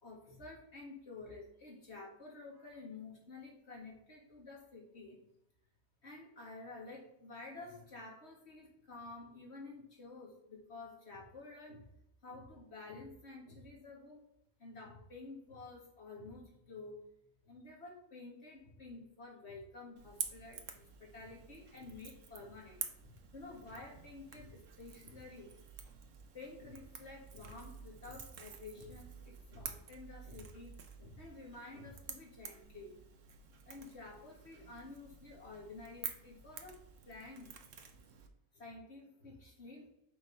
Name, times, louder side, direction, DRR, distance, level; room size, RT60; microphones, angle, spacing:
voice 1, 0.0-5.2 6.0-11.9 12.2-14.2 14.6-17.0 17.4-25.7 26.3-33.0 33.7-37.9 38.5-39.9, left 3 dB, 55° left, -2 dB, 2.2 m, -51 dB
Crackle / Crack, 20.0-38.3, right 6 dB, 75° right, 1.2 m, -49 dB
6.0 x 4.8 x 5.4 m, 0.80 s
omnidirectional pair, 1.3 m